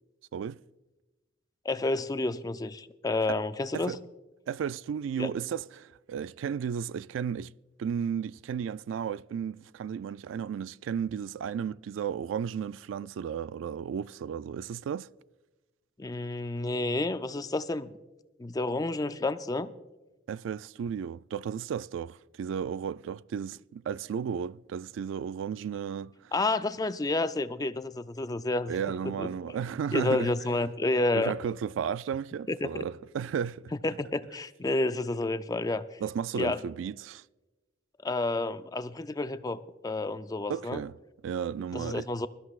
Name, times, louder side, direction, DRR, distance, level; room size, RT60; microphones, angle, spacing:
voice 1, 1.6-4.0 5.2-5.3 16.0-18.0 18.4-19.7 26.3-28.7 29.0-29.3 29.9-31.3 32.5-32.9 33.8-36.0 36.3-36.6 38.0-40.8 41.7-42.3, left 2 dB, 20° left, 0.4 m, -30 dB
voice 2, 4.5-7.5 7.8-15.1 20.3-26.3 28.7-30.3 31.1-33.7 36.0-37.2 40.5-40.9 41.2-42.1, right 7 dB, 75° right, 0.3 m, -34 dB
22.0 x 13.0 x 2.4 m
head